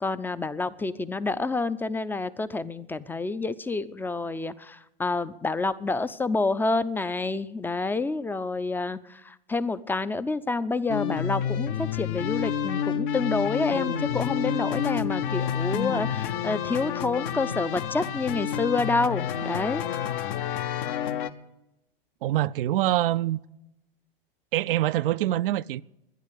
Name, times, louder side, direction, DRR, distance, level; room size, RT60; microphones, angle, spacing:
voice 1, 0.0-19.8, left 3 dB, 5° left, 0.5 m, -28 dB
sound 1, 10.9-21.3, left 8 dB, 60° left, 1.0 m, -29 dB
voice 2, 22.2-23.4 24.5-25.8, right 14 dB, 65° right, 0.5 m, -25 dB
12.0 x 10.5 x 8.5 m
hypercardioid pair, 100°, 29 cm